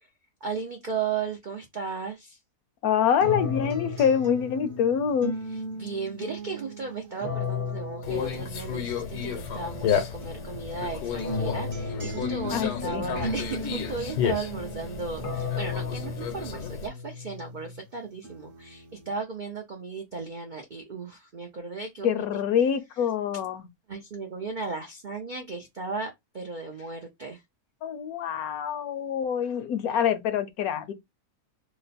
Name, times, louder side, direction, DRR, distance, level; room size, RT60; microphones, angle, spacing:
voice 1, 0.4-2.4 5.7-22.2 23.9-27.4, right 4 dB, 80° right, 0.4 m, -35 dB
voice 2, 2.8-5.3 12.5-13.1 22.0-23.7 27.8-30.9, left 8 dB, 70° left, 1.0 m, -26 dB
sound 1, 3.2-5.3 7.2-9.1 11.2-13.1 15.2-17.4, left 6 dB, 50° left, 0.6 m, -36 dB
sound 2, 3.2-9.8 10.2-17.8 18.2-19.2, equal, 45° right, 0.7 m, -37 dB
Conversation, 8.0-16.9, left 7 dB, 90° left, 1.3 m, -32 dB
3.0 x 2.0 x 4.0 m
omnidirectional pair, 1.7 m